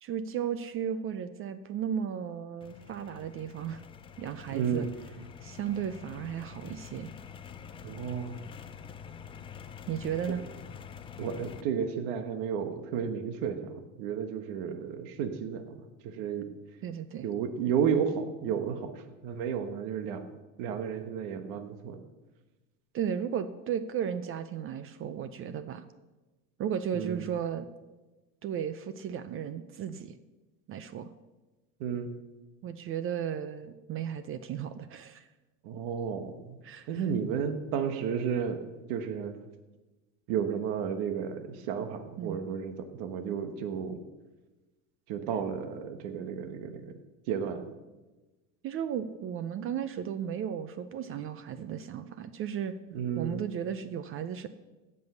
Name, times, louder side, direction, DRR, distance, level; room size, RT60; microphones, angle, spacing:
voice 1, 0.0-3.8 4.2-4.9 5.4-7.1 9.9-10.4 16.8-17.2 22.9-25.9 26.6-27.7 28.4-30.2 30.7-31.1 32.6-35.3 36.6-37.1 42.2-42.4 48.6-52.7 53.2-54.5, right 8 dB, 35° right, 12 dB, 0.5 m, -35 dB
sound 1, 2.6-11.6, left 7 dB, 15° left, 0.3 m, -46 dB
voice 2, 4.5-4.9 7.8-8.4 11.2-16.5 17.2-20.2 20.6-22.0 26.9-27.2 31.8-32.1 35.6-36.6 36.9-38.6 38.9-39.4 40.3-44.0 45.1-46.9 47.3-47.7 52.9-53.4, right 7 dB, 60° right, 7 dB, 1.4 m, -32 dB
16.0 x 5.5 x 6.8 m, 1.2 s
supercardioid pair, 135°, 40 cm